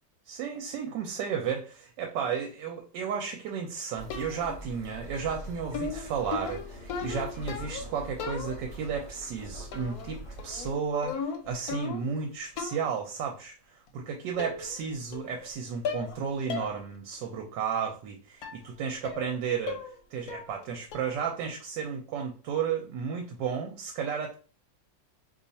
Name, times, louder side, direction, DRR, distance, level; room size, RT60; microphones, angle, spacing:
voice 1, 0.3-19.8 20.1-24.3, right 6 dB, 75° right, 3 dB, 1.2 m, -33 dB
sound 1, 4.0-10.7, right 1 dB, 20° left, 0.8 m, -44 dB
sound 2, 4.1-4.7 5.7-7.9 8.2-8.9 9.7-10.1 10.4-12.2 12.6-12.9 13.9-14.0 14.4-14.9 15.1-15.5 15.8-16.2 16.5-16.7 17.1-17.2 18.4-18.6 19.0-19.4 19.7-20.0 20.3-20.6 20.9-21.3, left 5 dB, 65° left, 1.0 m, -36 dB
2.9 x 2.3 x 4.0 m, 0.37 s
omnidirectional pair, 2.0 m